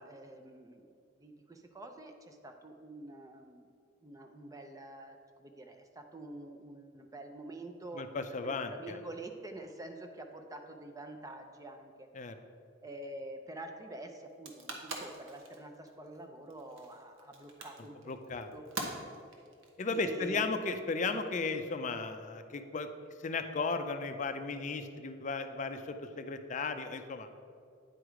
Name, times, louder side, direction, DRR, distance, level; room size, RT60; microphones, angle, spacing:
voice 1, 0.0-3.7 4.0-8.0 8.4-12.1 12.8-18.0 18.2-18.6 19.9-20.4, right 2 dB, 20° right, 5 dB, 0.5 m, -47 dB
voice 2, 8.0-9.0 12.2-12.3 18.1-18.5 19.8-22.9 23.2-27.3, left 3 dB, 40° left, 8 dB, 0.4 m, -35 dB
sound 1, 14.3-20.6, right 2 dB, 80° right, 1.1 m, -44 dB
9.1 x 4.7 x 4.9 m, 2.3 s
head